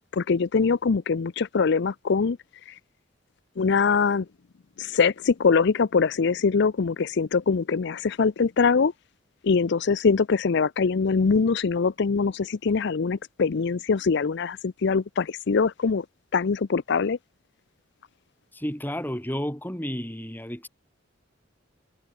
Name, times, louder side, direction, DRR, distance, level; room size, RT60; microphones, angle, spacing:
voice 1, 0.1-2.4 3.6-4.3 4.8-8.9 9.4-16.0 16.3-17.2, left 5 dB, 60° left, 0.5 m, -23 dB
voice 2, 18.5-20.7, equal, 10° left, 6.1 m, -31 dB
head